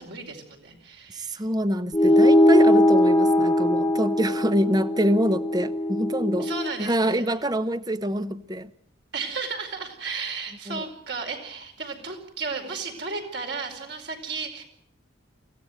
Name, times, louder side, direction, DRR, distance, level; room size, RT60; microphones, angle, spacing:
voice 1, 0.0-1.4 2.0-2.7 6.4-7.2 9.1-14.6, right 4 dB, 60° right, 3 dB, 4.8 m, -34 dB
voice 2, 1.1-6.5 6.8-8.7 10.7-10.8, equal, 20° right, 13 dB, 0.9 m, -25 dB
sound 1, 1.9-6.7, left 1 dB, 15° left, 1.2 m, -20 dB
24.0 x 16.5 x 8.0 m, 0.69 s
head